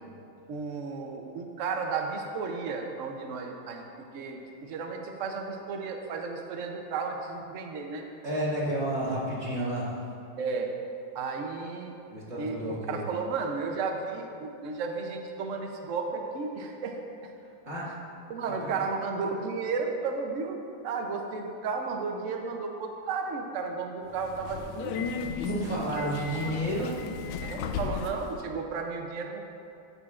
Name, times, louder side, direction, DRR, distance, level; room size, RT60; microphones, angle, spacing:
voice 1, 0.5-3.8 4.1-8.0 10.4-10.7 11.1-12.0 12.4-12.6 12.9-17.3 18.3-20.6 20.8-24.9 25.9-26.0 26.4-26.6 27.4-29.4, right 4 dB, 85° right, 2 dB, 0.6 m, -33 dB
voice 2, 8.2-10.0 12.1-13.0 17.7-17.9 18.6-18.7 25.2-27.0, right 1 dB, 35° right, -8 dB, 2.3 m, -31 dB
Subway metro underground, 24.1-28.3, left 6 dB, 75° left, 1.3 m, -35 dB
13.0 x 8.2 x 2.4 m, 2.6 s
omnidirectional pair, 2.2 m